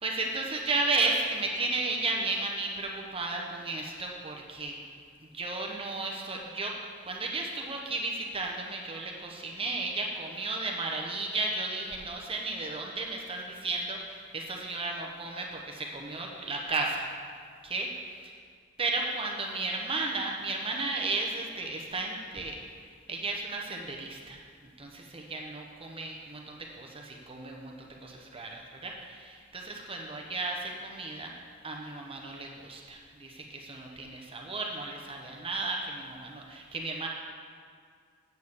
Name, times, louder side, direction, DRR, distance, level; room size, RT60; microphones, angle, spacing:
voice 1, 0.0-4.8 5.2-6.8 7.0-17.0 17.6-18.3 18.8-22.6 23.1-31.3 31.6-37.1, right 3 dB, 25° right, 0 dB, 0.9 m, -34 dB
8.0 x 7.2 x 7.2 m, 2.1 s
head